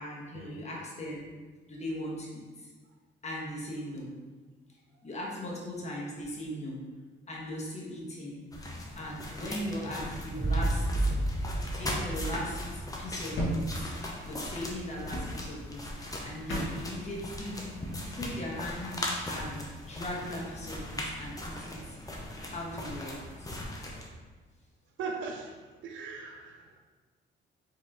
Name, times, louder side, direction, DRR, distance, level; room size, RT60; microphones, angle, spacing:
voice 1, 0.0-1.3 1.7-2.7 3.2-4.1 5.0-6.8 7.3-8.5 9.0-11.1 11.8-13.9 14.2-17.6 18.1-18.9 19.3-22.0 22.5-23.5, left 1 dB, 35° left, -3 dB, 1.3 m, -39 dB
sound 1, 8.5-24.1, left 1 dB, 20° left, 0.8 m, -39 dB
sound 2, 10.0-12.8, right 2 dB, 20° right, 0.5 m, -31 dB
sound 3, 12.7-17.4, equal, 70° left, 1.5 m, -39 dB
voice 2, 25.0-25.5 25.8-26.8, right 4 dB, 75° right, 2 dB, 0.6 m, -39 dB
4.8 x 3.1 x 3.6 m, 1.3 s
cardioid pair, 90°, 20 cm